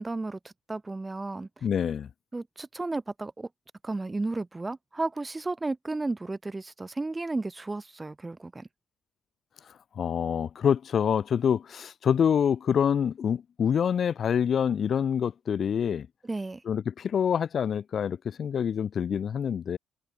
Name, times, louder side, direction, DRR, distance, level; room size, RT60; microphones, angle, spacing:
voice 1, 0.0-1.7 2.3-3.5 3.8-8.7 16.2-16.6, right 2 dB, 20° right, 1.2 m, -33 dB
voice 2, 1.6-2.1 10.0-16.1 16.7-19.8, left 8 dB, 55° left, 0.4 m, -26 dB
cardioid pair, 90°, 0 cm